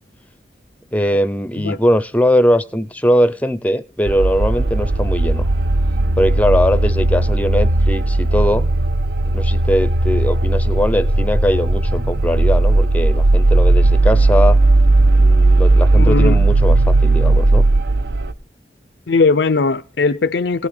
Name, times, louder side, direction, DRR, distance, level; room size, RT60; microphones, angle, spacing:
voice 1, 0.9-5.5 6.2-8.7 9.3-14.6 15.2-17.6, equal, 10° left, 0.5 m, -20 dB
sound 1, 4.1-18.3, right 2 dB, 70° right, 0.8 m, -15 dB
voice 2, 15.9-16.5 19.1-20.7, left 4 dB, 80° left, 0.6 m, -18 dB
17.0 x 6.1 x 6.5 m
head